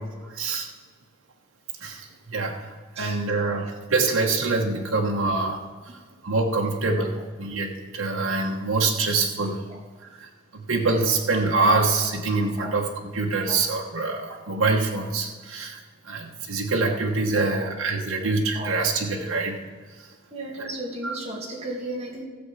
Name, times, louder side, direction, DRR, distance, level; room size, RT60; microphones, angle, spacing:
voice 1, 0.2-0.7 1.8-5.6 6.2-9.6 10.2-15.8 16.0-19.6 20.6-20.7 21.0-21.2, right 3 dB, 85° right, 0 dB, 1.3 m, -25 dB
voice 2, 3.0-3.6 4.9-5.0 5.3-5.5 9.7-9.8 11.7-11.8 12.6-12.8 13.5-13.6 17.3-17.7 18.5-18.8 19.3-19.4 20.3-22.2, right 2 dB, 30° right, -3 dB, 2.4 m, -36 dB
15.5 x 7.2 x 5.6 m, 1.5 s
head